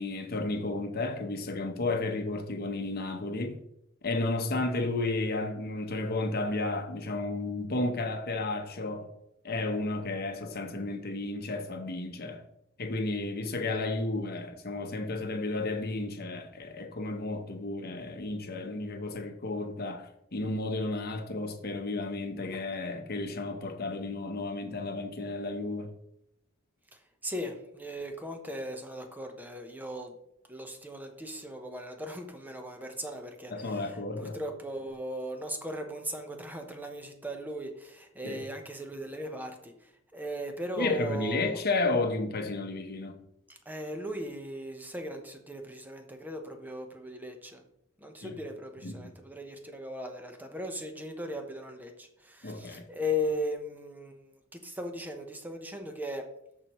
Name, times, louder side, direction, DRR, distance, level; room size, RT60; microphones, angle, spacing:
voice 1, 0.0-3.6 4.0-9.1 9.4-12.4 12.8-25.9 33.5-34.4 38.2-38.5 40.8-43.2 48.2-48.4 48.8-49.0 52.4-52.8, left 2 dB, 50° left, 1.0 m, -32 dB
voice 2, 27.2-30.1 30.5-39.7 40.1-41.6 43.5-47.6 48.0-56.2, left 1 dB, 10° right, 0.9 m, -38 dB
13.5 x 4.7 x 3.1 m
head